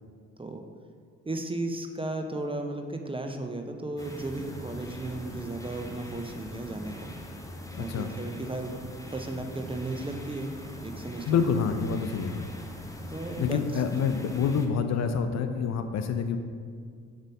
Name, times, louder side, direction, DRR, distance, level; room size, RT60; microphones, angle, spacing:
voice 1, 1.2-7.1 7.8-8.7 9.1-10.5 10.8-11.4 13.1-13.8 14.2-14.3, right 2 dB, 15° right, 4 dB, 0.6 m, -35 dB
sound 1, 4.0-14.7, equal, 10° left, 0.9 m, -42 dB
voice 2, 7.7-8.1 11.3-12.5 13.4-16.4, left 6 dB, 45° left, 7 dB, 0.6 m, -27 dB
7.4 x 3.6 x 5.3 m, 2.1 s
figure-of-eight pair, 45°, 38 cm